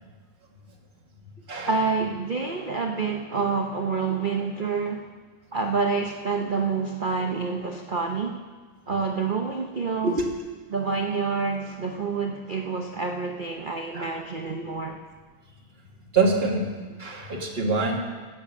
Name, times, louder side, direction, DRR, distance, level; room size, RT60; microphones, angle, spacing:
voice 1, 1.7-5.1 5.5-8.4 8.9-10.2 10.7-15.0, right 4 dB, 85° right, 3 dB, 0.4 m, -28 dB
voice 2, 16.1-18.0, right 3 dB, 30° right, -1 dB, 2.0 m, -25 dB
15.5 x 7.7 x 6.6 m, 1.4 s
omnidirectional pair, 2.1 m